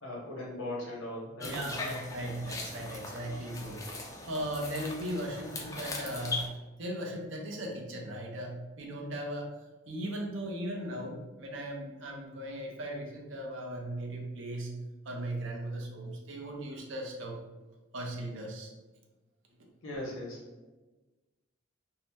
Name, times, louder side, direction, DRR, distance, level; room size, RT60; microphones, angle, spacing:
voice 1, 0.0-1.6 19.8-20.7, left 1 dB, 80° left, -3 dB, 0.9 m, -39 dB
sound 1, 1.4-6.5, left 3 dB, 15° left, 0.3 m, -40 dB
voice 2, 1.4-3.8 4.3-6.5 6.8-9.5 9.9-14.7 15.1-17.4 17.9-18.7, right 1 dB, 65° right, 0 dB, 0.6 m, -37 dB
2.7 x 2.0 x 3.3 m, 1.1 s
head